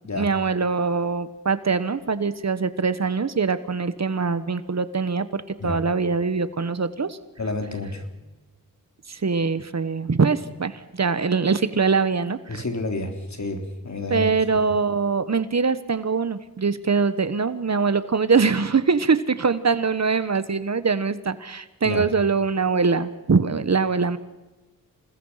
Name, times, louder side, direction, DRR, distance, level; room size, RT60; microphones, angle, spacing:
voice 1, 0.1-7.2 9.1-12.6 14.1-24.2, right 5 dB, 50° right, 13 dB, 1.3 m, -23 dB
voice 2, 7.4-8.1 12.5-14.6 21.8-22.0, left 2 dB, 50° left, 5 dB, 3.8 m, -30 dB
28.0 x 20.0 x 5.8 m, 1.1 s
wide cardioid pair, 75°, 35 cm